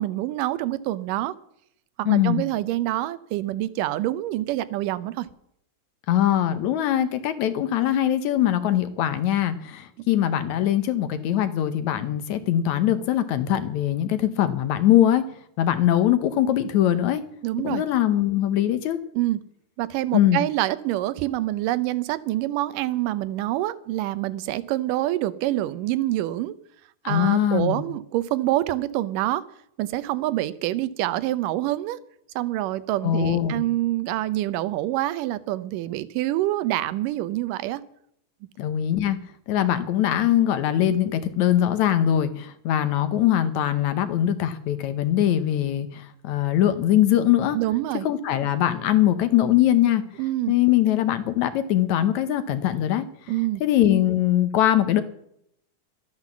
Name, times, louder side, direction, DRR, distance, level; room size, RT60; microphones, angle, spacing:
voice 1, 0.0-1.3 2.0-5.3 10.0-10.1 17.4-17.8 19.1-19.4 19.8-26.5 27.1-29.4 29.8-32.0 32.4-37.8 47.5-48.1 50.2-50.5 53.3-53.6, right 15 dB, 75° right, 16 dB, 2.2 m, -26 dB
voice 2, 2.1-2.4 6.1-15.2 15.6-17.2 17.6-19.0 20.1-20.4 27.0-27.8 33.0-33.6 38.6-39.2 39.5-47.6 48.1-50.0 50.5-53.1 53.6-55.0, left 11 dB, 70° left, 11 dB, 1.9 m, -22 dB
13.0 x 9.8 x 7.2 m, 0.71 s
omnidirectional pair, 4.0 m